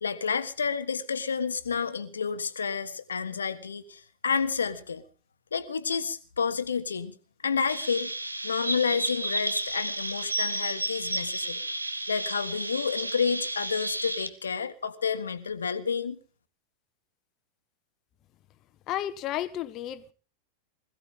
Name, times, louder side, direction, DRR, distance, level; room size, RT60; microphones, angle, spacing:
voice 1, 0.0-5.0 5.5-7.1 7.4-8.1 8.4-11.6 12.1-16.2, left 6 dB, 70° left, 1.5 m, -30 dB
Chirp tweet, 7.7-14.3, right 1 dB, 85° right, 1.4 m, -32 dB
voice 2, 18.9-20.1, left 12 dB, 35° left, 1.1 m, -32 dB
21.0 x 15.5 x 3.7 m
figure-of-eight pair, 90°, 0 cm